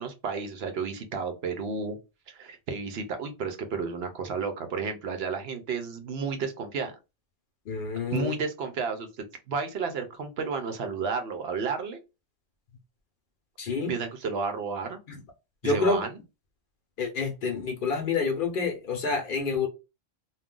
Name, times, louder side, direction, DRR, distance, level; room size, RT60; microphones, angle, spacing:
voice 1, 0.0-2.0 2.3-6.9 8.1-12.0 13.9-15.0 15.6-16.2, right 5 dB, 70° right, 0.8 m, -32 dB
voice 2, 7.7-8.4 13.6-13.9 15.1-15.2 15.6-16.0 17.0-19.7, left 4 dB, 55° left, 0.7 m, -28 dB
2.4 x 2.2 x 3.6 m
omnidirectional pair, 1.1 m